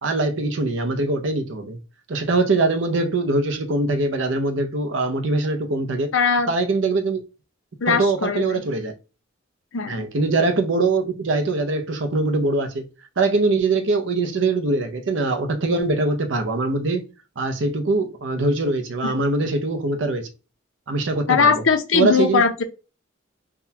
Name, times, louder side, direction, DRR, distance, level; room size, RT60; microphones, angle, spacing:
voice 1, 0.0-1.8 2.1-6.1 6.5-7.2 7.9-8.9 9.9-12.9 13.2-17.1 17.4-20.3 20.9-21.5 21.9-22.4, right 3 dB, 70° right, 0.6 m, -22 dB
voice 2, 6.1-6.5 7.8-8.5 9.7-10.1 19.0-19.1 21.3-22.6, left 5 dB, 90° left, 0.6 m, -20 dB
3.5 x 2.2 x 2.8 m
head